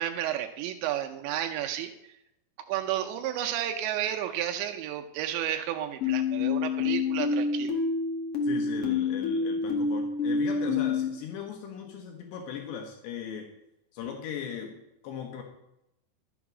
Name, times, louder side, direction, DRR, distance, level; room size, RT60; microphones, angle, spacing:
voice 1, 0.0-1.9 2.7-7.8, right 11 dB, 85° right, 5 dB, 3.0 m, -32 dB
sound 1, 6.0-11.1, left 4 dB, 50° left, 1.8 m, -27 dB
voice 2, 8.4-13.5 13.9-15.4, left 8 dB, 75° left, 2 dB, 3.4 m, -38 dB
12.5 x 7.2 x 6.0 m, 0.85 s
omnidirectional pair, 5.1 m